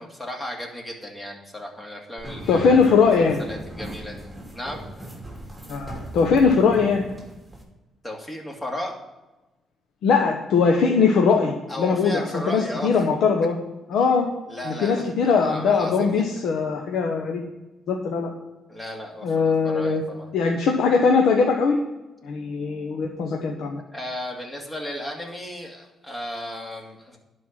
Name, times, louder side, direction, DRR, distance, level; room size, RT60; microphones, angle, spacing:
voice 1, 0.0-3.1 3.4-4.9 8.0-8.9 11.7-12.9 14.5-16.4 18.7-20.3 23.9-27.2, left 1 dB, 20° left, 1 dB, 2.4 m, -35 dB
sound 1, 2.2-7.6, right 1 dB, 5° right, 3.0 m, -38 dB
voice 2, 2.5-3.4 5.7-7.1 10.0-13.6 13.9-14.3 14.6-17.4 17.9-18.3 19.2-20.0 20.3-21.8 22.2-23.8, left 5 dB, 75° left, 2 dB, 1.0 m, -20 dB
11.0 x 4.5 x 7.4 m, 1.1 s
cardioid pair, 90°, 0 cm